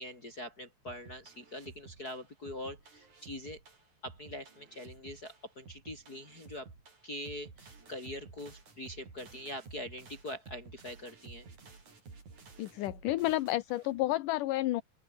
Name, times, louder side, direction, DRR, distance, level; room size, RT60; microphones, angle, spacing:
voice 1, 0.0-3.6 4.0-6.7 7.0-11.5, left 1 dB, 25° left, 4.8 m, -43 dB
sound 1, 0.9-14.1, right 4 dB, 60° right, 7.2 m, -53 dB
voice 2, 12.6-14.8, left 16 dB, 75° left, 2.4 m, -31 dB
omnidirectional pair, 3.8 m